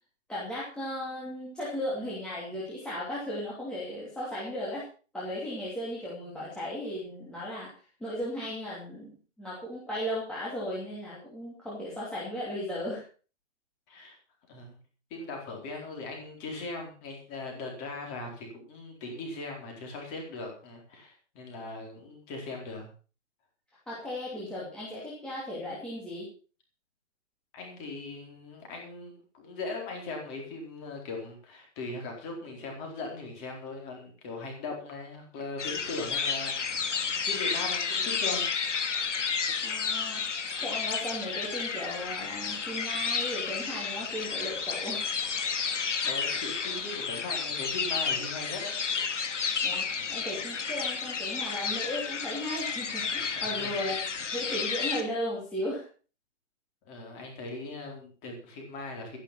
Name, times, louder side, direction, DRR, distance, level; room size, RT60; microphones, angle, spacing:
voice 1, 0.3-4.8 5.1-7.7 8.0-13.0 23.9-26.3 39.6-40.3 40.6-45.1 49.6-53.9 54.3-55.8, left 1 dB, ahead, -8 dB, 2.7 m, -36 dB
voice 2, 13.9-14.2 14.5-14.8 15.1-22.9 27.5-38.5 46.0-48.7 53.2-53.8 56.8-59.2, left 3 dB, 15° left, 1 dB, 4.2 m, -39 dB
sound 1, 35.6-55.0, left 6 dB, 75° left, 2.6 m, -31 dB
13.0 x 11.5 x 5.7 m, 0.38 s
hypercardioid pair, 175°, 36 cm